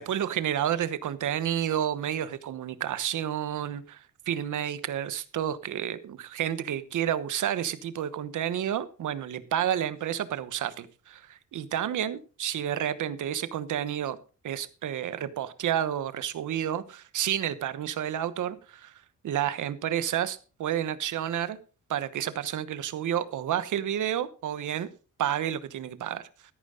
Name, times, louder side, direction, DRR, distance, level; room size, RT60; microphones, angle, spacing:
voice 1, 0.0-14.2 14.4-18.9 19.2-21.6 21.9-24.9 25.2-26.3, right 10 dB, 75° right, 1.1 m, -30 dB
13.5 x 11.0 x 3.8 m
wide cardioid pair, 170°, 31 cm